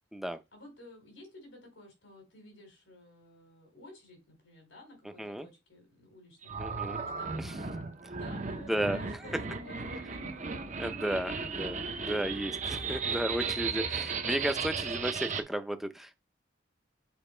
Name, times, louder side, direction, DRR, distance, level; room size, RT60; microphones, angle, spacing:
voice 1, 0.5-7.7 8.2-11.0, left 2 dB, 90° left, 3.8 m, -53 dB
sound 1, 6.4-15.4, right 5 dB, 40° right, 0.7 m, -35 dB
voice 2, 6.6-7.0 7.4-7.5 8.7-9.0 10.8-16.1, right 1 dB, ahead, 0.6 m, -34 dB
7.2 x 3.9 x 4.4 m
head